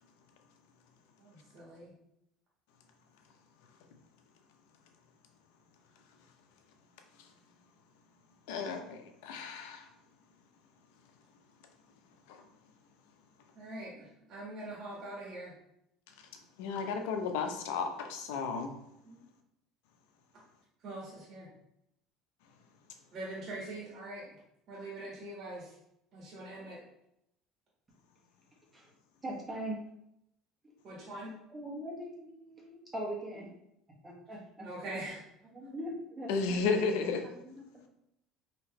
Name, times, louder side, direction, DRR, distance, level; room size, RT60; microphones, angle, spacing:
voice 1, 1.2-1.9 13.5-15.5 19.0-19.2 20.8-21.5 23.1-24.2 24.7-25.7 26.1-26.8 30.8-31.3 34.6-35.2, right 1 dB, 50° right, -6 dB, 1.6 m, -43 dB
voice 2, 8.5-9.9 12.3-12.4 16.6-18.7 36.3-37.2, left 4 dB, 85° left, 4 dB, 0.6 m, -33 dB
voice 3, 29.2-29.8 31.5-33.5 34.0-34.7 35.5-36.6 37.4-37.9, right 1 dB, 20° right, -3 dB, 1.2 m, -41 dB
4.3 x 2.9 x 3.1 m, 0.80 s
supercardioid pair, 110°, 0 cm